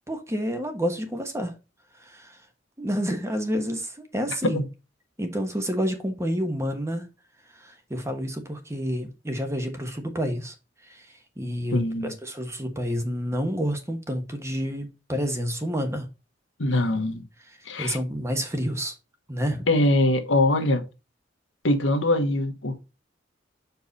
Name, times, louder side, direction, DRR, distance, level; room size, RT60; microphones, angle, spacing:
voice 1, 0.1-1.5 2.0-2.4 2.8-4.6 5.2-7.1 7.5-10.5 10.8-16.1 17.4-18.9 19.3-19.7, equal, 15° right, 1.2 m, -29 dB
voice 2, 11.7-12.1 16.6-17.2 17.6-18.0 19.7-20.8 21.6-22.8, left 1 dB, 80° left, 1.3 m, -22 dB
6.8 x 4.7 x 4.1 m
head